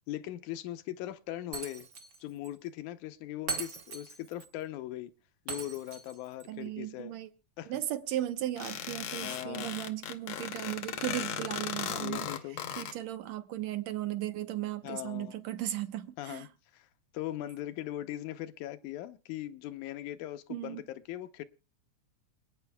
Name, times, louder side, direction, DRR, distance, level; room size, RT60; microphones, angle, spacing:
voice 1, 0.1-1.9 2.2-5.1 5.5-7.1 7.6-7.7 9.2-9.8 12.0-12.6 14.8-15.3 16.2-16.5 16.7-16.9 17.1-20.8 21.1-21.4, left 14 dB, 85° left, 2.2 m, -40 dB
Shatter, 1.5-2.2 2.4-2.5 3.5-4.5 5.5-6.5, right 4 dB, 45° right, 1.2 m, -39 dB
voice 2, 6.5-7.3 7.7-12.3 12.8-16.5 20.5-20.8, right 13 dB, 75° right, 2.0 m, -36 dB
sound 1, 8.6-12.9, left 9 dB, 65° left, 1.4 m, -37 dB
27.5 x 9.3 x 2.2 m
omnidirectional pair, 3.4 m